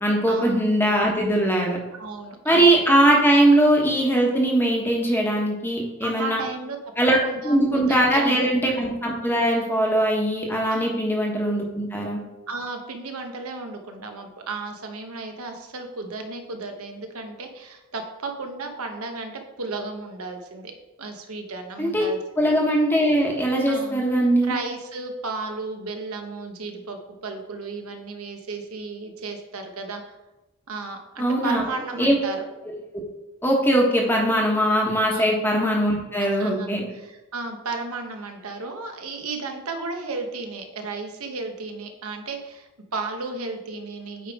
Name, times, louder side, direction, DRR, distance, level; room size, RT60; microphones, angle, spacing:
voice 1, 0.0-1.8 2.4-6.4 7.0-7.2 7.4-12.2 21.8-22.1 22.4-24.5 31.2-31.6 32.0-32.1 33.4-36.8, right 1 dB, 10° left, -1 dB, 1.1 m, -20 dB
voice 2, 1.9-2.8 6.0-6.8 7.2-8.4 10.7-11.0 12.5-19.3 19.6-20.7 21.0-22.2 23.7-24.0 24.4-30.0 30.7-32.4 35.1-35.4 36.2-44.3, right 3 dB, 80° right, 4 dB, 0.9 m, -34 dB
8.5 x 3.5 x 4.7 m, 1.0 s
head